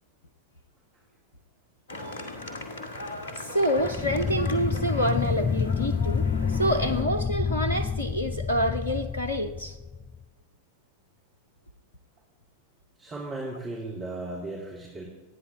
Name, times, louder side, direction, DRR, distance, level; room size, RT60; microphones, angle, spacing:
sound 1, 1.9-7.0, left 2 dB, 60° left, 2.0 m, -39 dB
voice 1, 3.4-6.3 6.5-9.8, equal, 75° left, 11 dB, 0.9 m, -27 dB
sound 2, 3.8-10.2, left 6 dB, 25° left, 0.4 m, -29 dB
voice 2, 13.0-15.0, right 2 dB, 25° right, -3 dB, 3.4 m, -36 dB
27.5 x 9.8 x 3.8 m, 1.3 s
figure-of-eight pair, 90°, 0 cm